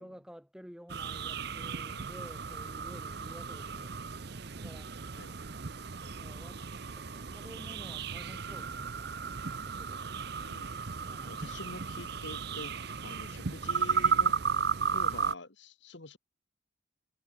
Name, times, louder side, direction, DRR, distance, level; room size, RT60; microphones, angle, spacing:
voice 1, 0.0-4.0 4.5-4.9 6.1-6.6 6.9-9.4 9.7-10.3 11.1-11.4, equal, 5° right, 7.4 m, -52 dB
sound 1, 0.9-15.3, right 6 dB, 55° right, 0.8 m, -34 dB
voice 2, 10.4-10.9 11.3-16.2, left 2 dB, 65° left, 1.8 m, -46 dB
head